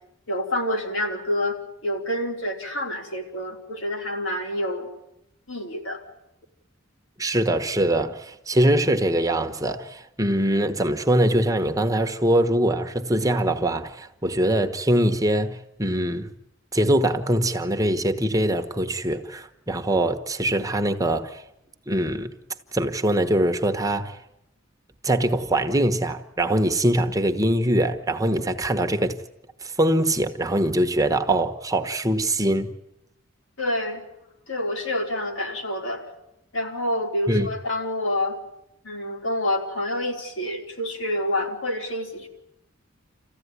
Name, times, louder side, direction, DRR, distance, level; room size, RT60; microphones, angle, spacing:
voice 1, 0.3-1.6 1.8-4.9 5.5-6.0 33.6-34.0 34.5-36.1 36.5-38.4 38.8-42.3, left 1 dB, 75° left, 4.3 m, -27 dB
voice 2, 7.2-16.3 16.7-21.4 21.9-22.3 22.7-24.2 25.0-29.2 29.6-32.7 37.3-37.5, right 1 dB, 20° right, 1.1 m, -23 dB
27.5 x 15.0 x 9.7 m
head